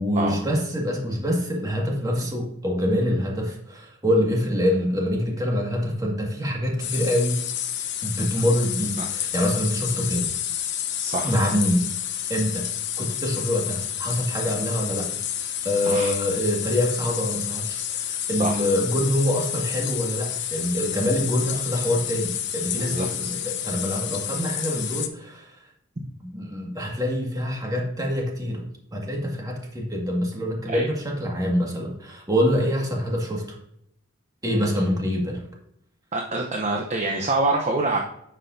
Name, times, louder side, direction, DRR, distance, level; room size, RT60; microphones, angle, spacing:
voice 1, 0.0-7.4 8.0-10.3 11.2-11.8 12.3-12.7 13.0-25.6 26.2-28.6 28.9-33.6 34.4-35.4, equal, 20° right, -1 dB, 2.0 m, -25 dB
sound 1, 6.8-25.1, left 10 dB, 60° left, 0.9 m, -30 dB
voice 2, 11.0-11.4 15.8-16.1 18.4-18.6 22.7-23.1 30.7-30.9 36.1-38.0, right 2 dB, 35° right, 2 dB, 0.9 m, -26 dB
10.0 x 7.3 x 2.7 m, 0.73 s
head